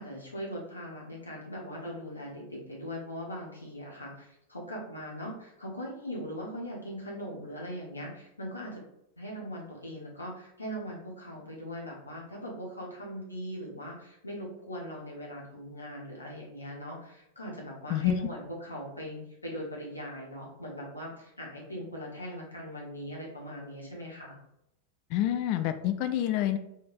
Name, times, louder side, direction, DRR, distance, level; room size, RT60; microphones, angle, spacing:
voice 1, 0.0-8.8 9.2-24.4, equal, 80° left, -3 dB, 1.3 m, -40 dB
voice 2, 25.1-26.6, left 12 dB, 45° left, 10 dB, 0.4 m, -27 dB
5.7 x 3.4 x 2.6 m, 0.82 s
figure-of-eight pair, 90°, 0 cm